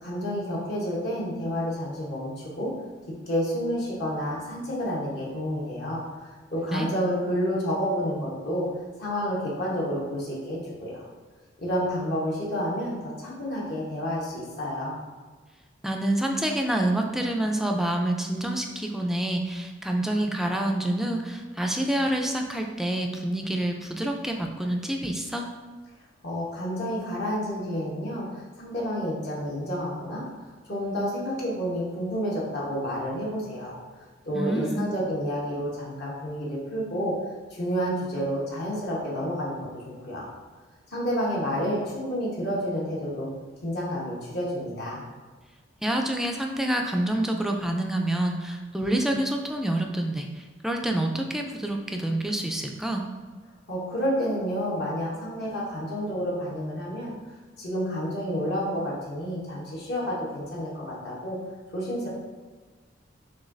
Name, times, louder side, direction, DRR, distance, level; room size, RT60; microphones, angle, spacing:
voice 1, 0.0-2.7 3.3-8.7 9.0-11.0 11.6-15.0 26.2-30.2 30.7-33.8 34.3-37.1 37.5-40.3 40.9-43.3 43.6-45.0 53.7-57.1 57.6-61.4 61.7-62.1, equal, 60° left, -5 dB, 1.0 m, -30 dB
voice 2, 15.8-25.5 34.3-34.9 45.8-53.0, right 1 dB, ahead, 2 dB, 0.3 m, -27 dB
6.2 x 2.3 x 2.5 m, 1.4 s
head